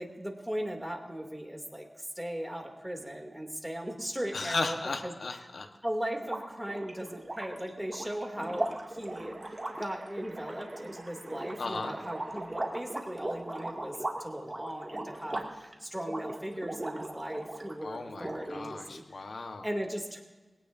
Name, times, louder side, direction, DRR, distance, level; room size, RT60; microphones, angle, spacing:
voice 1, 0.0-4.8 5.0-5.1 5.8-9.3 9.8-19.0 19.6-20.2, equal, 5° right, 2 dB, 2.8 m, -38 dB
voice 2, 4.3-5.7 11.6-11.9 17.8-19.6, left 3 dB, 85° left, 5 dB, 1.3 m, -36 dB
sound 1, 6.2-17.8 18.1-18.9, right 1 dB, 30° right, 2.3 m, -39 dB
sound 2, 8.6-13.7, right 3 dB, 70° right, 6.4 m, -55 dB
22.0 x 17.5 x 2.7 m, 1.3 s
wide cardioid pair, 60°, 0 cm